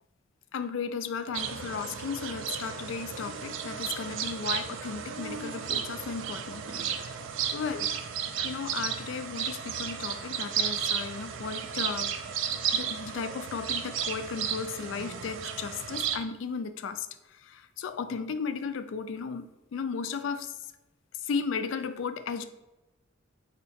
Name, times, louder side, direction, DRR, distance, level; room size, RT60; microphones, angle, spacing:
voice 1, 0.5-6.7 7.0-7.2 7.5-8.0 8.4-12.1 12.7-17.1 17.3-19.5 19.7-20.5 21.2-22.4, left 5 dB, 70° left, 10 dB, 0.3 m, -35 dB
sound 1, 1.3-16.2, right 8 dB, 70° right, 0.4 m, -33 dB
4.0 x 2.7 x 4.3 m, 1.0 s
head